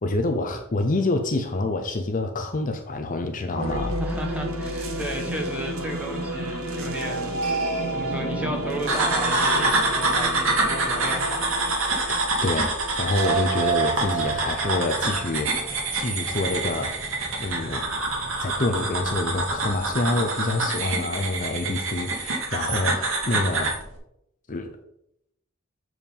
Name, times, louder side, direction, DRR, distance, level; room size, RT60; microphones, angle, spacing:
voice 1, 0.0-4.0 12.1-17.0 17.4-17.9 18.4-23.8 24.5-24.8, left 2 dB, 40° left, 6 dB, 0.7 m, -27 dB
sound 1, 3.5-15.7, right 3 dB, 85° right, 1.3 m, -30 dB
voice 2, 4.0-11.5, equal, 5° right, 1 dB, 1.3 m, -34 dB
sound 2, 8.9-23.8, right 2 dB, 65° right, 1.8 m, -26 dB
sound 3, 13.6-19.9, equal, 35° right, 2.8 m, -43 dB
7.2 x 4.7 x 5.3 m, 0.78 s
head